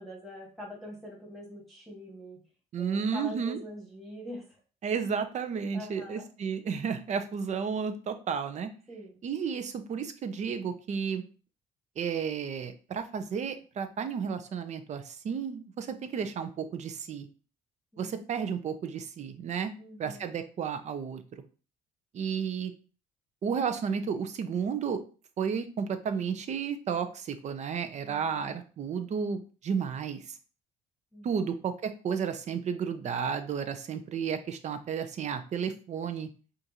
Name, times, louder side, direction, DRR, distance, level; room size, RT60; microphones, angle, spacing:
voice 1, 0.0-2.4 2.8-4.6 5.7-6.3 8.9-9.2 17.9-18.2 19.8-20.3 28.0-28.6 31.1-31.3, equal, ahead, -4 dB, 1.9 m, -44 dB
voice 2, 2.7-3.6 4.8-8.7 9.2-11.2 12.0-17.3 18.0-19.7 20.0-21.2 22.1-22.7 23.4-25.0 25.4-30.4 31.2-36.3, right 6 dB, 45° right, 9 dB, 0.6 m, -32 dB
5.1 x 2.6 x 2.9 m, 0.37 s
cardioid pair, 110°, 17 cm